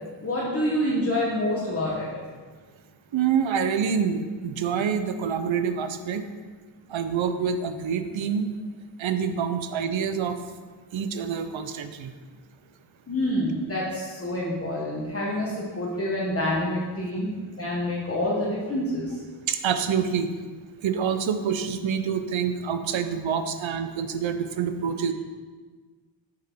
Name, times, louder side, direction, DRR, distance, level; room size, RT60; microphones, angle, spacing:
voice 1, 0.2-2.1 13.1-19.2, left 1 dB, 30° left, -6 dB, 1.1 m, -27 dB
voice 2, 3.1-6.2 6.9-8.5 9.0-10.4 10.9-12.1 19.5-20.3 20.8-25.1, right 7 dB, 80° right, 9 dB, 0.7 m, -26 dB
6.4 x 5.6 x 4.5 m, 1.5 s
wide cardioid pair, 140°, 46 cm